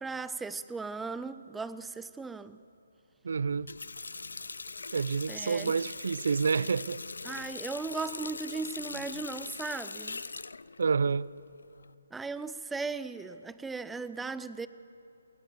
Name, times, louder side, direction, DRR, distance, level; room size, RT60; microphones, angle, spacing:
voice 1, 0.0-2.6 5.3-5.7 7.2-10.2 12.1-14.7, right 4 dB, 5° right, 14 dB, 0.6 m, -37 dB
voice 2, 3.2-3.7 4.9-7.0 10.8-11.3, right 5 dB, 60° right, 21 dB, 0.6 m, -28 dB
Water tap faucet, 3.5-11.9, left 3 dB, 75° left, 0.5 m, -42 dB
27.5 x 17.5 x 7.5 m, 2.7 s
figure-of-eight pair, 150°, 0 cm